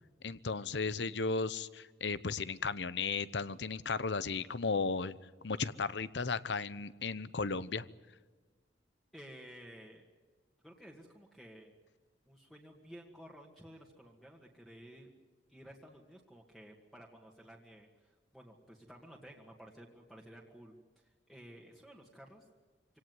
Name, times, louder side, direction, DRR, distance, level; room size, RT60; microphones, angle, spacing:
voice 1, 0.2-5.1 5.4-7.8, left 4 dB, 80° left, 16 dB, 0.9 m, -35 dB
voice 2, 9.1-10.1 10.6-11.7 12.3-15.1 15.5-22.5, equal, ahead, -1 dB, 2.1 m, -54 dB
26.0 x 18.0 x 9.4 m, 1.4 s
head